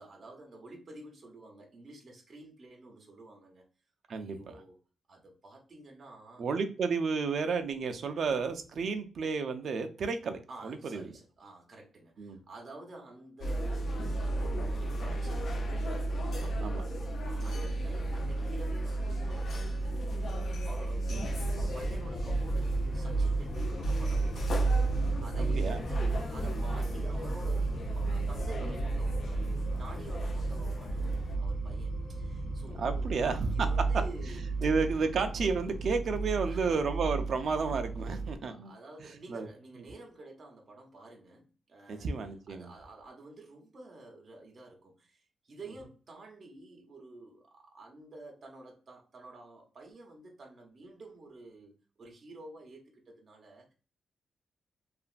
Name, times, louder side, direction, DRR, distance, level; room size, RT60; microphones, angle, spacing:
voice 1, 0.0-3.6 4.1-4.8 5.1-6.4 10.5-21.2 21.6-29.5 29.8-34.4 36.4-36.9 38.1-42.1 42.5-53.7, right 2 dB, 35° right, 0 dB, 0.8 m, -50 dB
voice 2, 4.1-4.6 6.4-11.0 12.2-12.4 16.6-16.8 21.1-21.3 25.4-25.8 26.9-27.0 28.6-28.8 32.8-33.7 34.6-38.7 39.3-39.5 41.9-42.7, right 4 dB, 55° right, 7 dB, 0.4 m, -32 dB
sound 1, 13.4-31.4, right 1 dB, 55° left, 0.4 m, -34 dB
sound 2, 21.1-38.3, right 3 dB, 80° left, 0.9 m, -34 dB
2.9 x 2.5 x 2.4 m, 0.36 s
wide cardioid pair, 145°, 0 cm